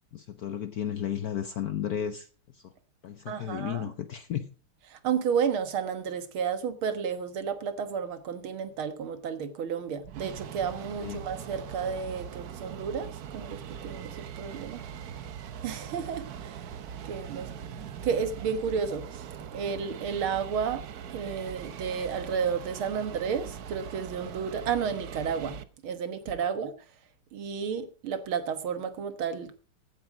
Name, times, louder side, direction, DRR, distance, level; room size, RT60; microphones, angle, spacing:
voice 1, 0.1-2.7 3.0-4.5 11.0-11.2, left 9 dB, 65° left, 1.0 m, -34 dB
voice 2, 3.3-3.9 4.9-14.8 15.6-16.7 17.1-17.5 18.0-25.6 25.8-26.7 27.3-29.5, right 6 dB, 75° right, 2.2 m, -32 dB
sound 1, 10.0-25.6, right 8 dB, 60° right, 1.1 m, -41 dB
15.0 x 9.0 x 4.8 m
omnidirectional pair, 2.4 m